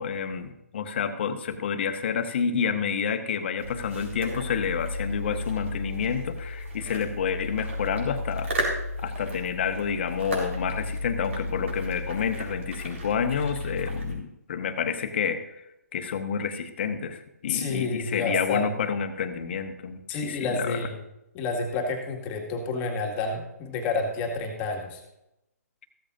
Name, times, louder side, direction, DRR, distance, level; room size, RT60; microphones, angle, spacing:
voice 1, 0.0-8.5 9.0-15.6 15.9-20.8, left 6 dB, 40° left, 8 dB, 1.3 m, -29 dB
sound 1, 3.6-14.1, left 1 dB, 55° right, 4.0 m, -33 dB
voice 2, 17.5-18.7 20.1-21.0 21.3-25.0, left 3 dB, 20° left, 2 dB, 2.0 m, -29 dB
15.5 x 13.5 x 2.6 m, 0.87 s
figure-of-eight pair, 135°, 9 cm